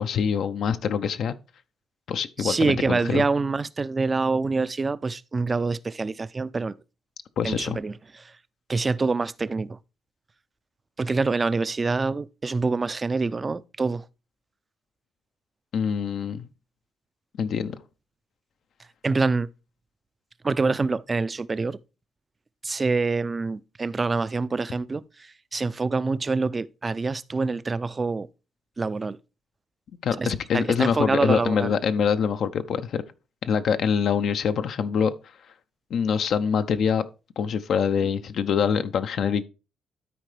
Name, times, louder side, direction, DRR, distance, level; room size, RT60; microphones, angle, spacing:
voice 1, 0.0-1.3 2.1-3.2 7.4-7.8 15.7-16.5 17.4-17.8 30.0-33.0 33.4-35.1 35.9-37.1 37.4-39.4, left 7 dB, 65° left, 0.5 m, -24 dB
voice 2, 2.4-6.7 7.4-8.3 8.7-9.8 11.0-14.1 19.0-19.5 20.4-21.8 22.6-28.3 28.8-29.2 30.2-31.8, right 3 dB, 30° right, 0.4 m, -26 dB
12.5 x 4.5 x 3.3 m
cardioid pair, 90°, 0 cm